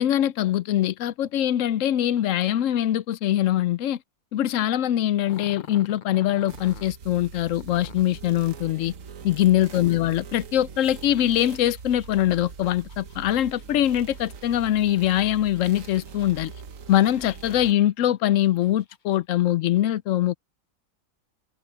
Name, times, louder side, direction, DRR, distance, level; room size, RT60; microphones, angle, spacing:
voice 1, 0.0-4.0 4.3-8.9 9.2-16.5 16.9-20.3, left 12 dB, 75° left, 0.9 m, -23 dB
Growling, 5.3-6.9 7.6-8.2 10.8-15.6 16.1-16.9 17.4-17.5 18.2-19.2, left 6 dB, 45° left, 0.8 m, -48 dB
sound 1, 6.5-17.7, right 6 dB, 70° right, 1.5 m, -42 dB
omnidirectional pair, 1.4 m